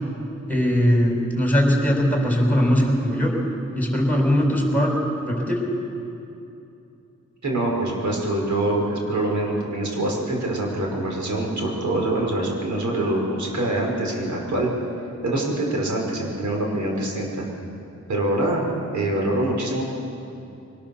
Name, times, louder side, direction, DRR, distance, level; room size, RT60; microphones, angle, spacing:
voice 1, 0.5-3.3 3.8-5.6, equal, 5° left, -1 dB, 5.1 m, -20 dB
voice 2, 7.4-14.7 15.2-17.5 18.1-18.6 18.9-19.8, right 1 dB, 80° right, -1 dB, 5.3 m, -24 dB
23.5 x 19.5 x 7.1 m, 2.8 s
wide cardioid pair, 100°, 29 cm